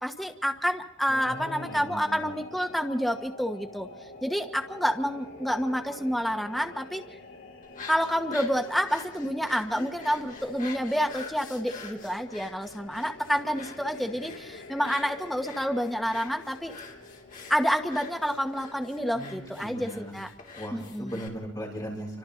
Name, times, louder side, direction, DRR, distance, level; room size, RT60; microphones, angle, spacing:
voice 1, 0.0-3.9 4.2-7.0 7.9-16.7 17.5-20.3 20.7-21.1, equal, ahead, 4 dB, 1.2 m, -28 dB
sound 1, 1.1-20.1, left 2 dB, 75° left, 6.6 m, -47 dB
voice 2, 1.1-2.3 19.1-20.2 20.5-22.2, equal, 20° left, -4 dB, 7.4 m, -38 dB
sound 2, 7.6-21.3, left 4 dB, 45° left, 3.3 m, -46 dB
30.0 x 25.5 x 3.9 m, 0.96 s
head